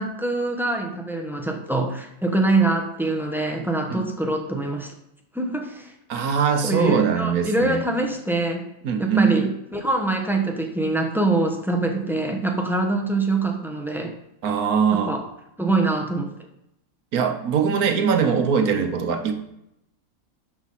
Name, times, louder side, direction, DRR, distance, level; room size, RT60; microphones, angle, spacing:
voice 1, 0.0-4.9 5.3-5.9 6.6-8.7 9.0-14.1 14.9-15.2 15.6-16.3, right 2 dB, ahead, 2 dB, 1.0 m, -24 dB
voice 2, 6.1-7.8 8.8-9.3 14.4-15.1 17.1-19.3, right 6 dB, 90° right, 6 dB, 1.5 m, -21 dB
11.5 x 5.5 x 4.1 m, 0.81 s
omnidirectional pair, 1.5 m